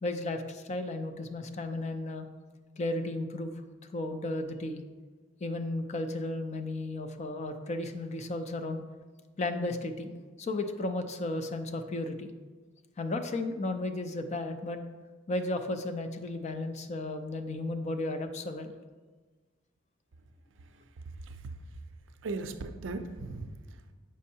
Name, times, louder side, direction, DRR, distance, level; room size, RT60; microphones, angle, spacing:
voice 1, 0.0-2.3 2.8-3.5 3.9-4.8 5.4-8.8 9.4-12.3 13.0-14.8 15.3-18.7, left 2 dB, 35° left, 7 dB, 0.4 m, -34 dB
voice 2, 20.6-21.6 22.2-23.9, right 3 dB, 65° right, 8 dB, 0.5 m, -39 dB
7.4 x 5.3 x 2.8 m, 1.3 s
head